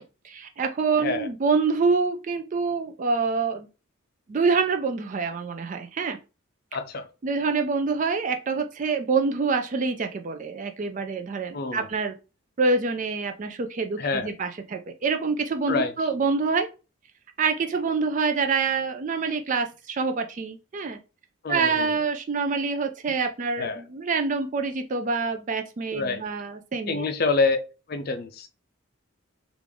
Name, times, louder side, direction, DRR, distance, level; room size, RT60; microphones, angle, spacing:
voice 1, 0.2-3.7 4.3-6.2 7.2-12.2 12.6-16.7 17.4-21.0 21.5-27.1, right 4 dB, 35° right, 0.3 m, -26 dB
voice 2, 6.7-7.1 11.5-11.9 14.0-14.3 15.7-15.9 21.4-22.0 23.6-23.8 25.9-26.2 26.9-27.6 27.9-28.5, left 4 dB, 45° left, 0.4 m, -26 dB
3.5 x 2.5 x 3.4 m
head